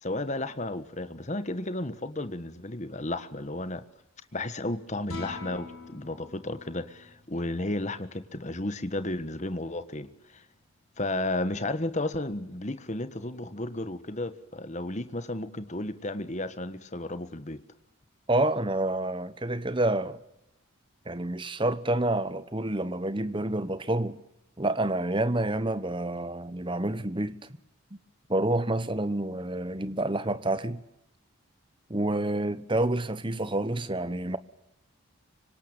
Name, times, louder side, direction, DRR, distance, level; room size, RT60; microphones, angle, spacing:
voice 1, 0.0-3.8 4.3-10.4 11.0-17.6, left 2 dB, 35° left, 1.5 m, -33 dB
sound 1, 5.0-11.4, left 3 dB, 75° left, 7.2 m, -47 dB
voice 2, 18.3-20.2 21.1-24.2 24.6-27.4 28.3-30.8 31.9-34.4, right 1 dB, 25° right, 1.1 m, -28 dB
25.5 x 25.5 x 9.0 m
head